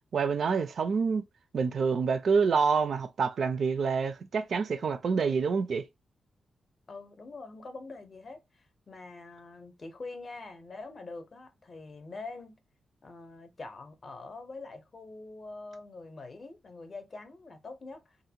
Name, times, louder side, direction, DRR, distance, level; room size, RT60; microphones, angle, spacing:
voice 1, 0.1-1.3 1.5-5.9, right 5 dB, 55° right, 0.3 m, -27 dB
voice 2, 6.9-12.6 13.0-18.2, left 3 dB, 35° left, 0.6 m, -44 dB
2.5 x 2.1 x 2.6 m
wide cardioid pair, 155°, 0 cm